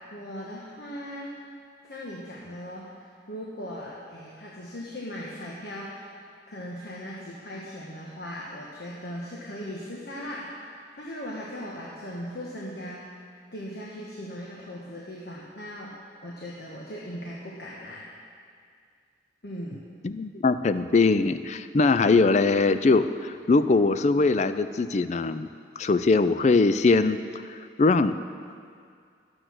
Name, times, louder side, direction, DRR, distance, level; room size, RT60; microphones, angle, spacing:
voice 1, 0.1-1.3 1.9-6.1 6.5-13.0 13.5-18.1 19.4-19.9, equal, 60° left, -4 dB, 1.3 m, -38 dB
voice 2, 20.0-25.5 25.8-27.2 27.8-28.1, left 3 dB, 40° left, 12 dB, 0.4 m, -21 dB
12.5 x 7.8 x 6.2 m, 2.2 s
head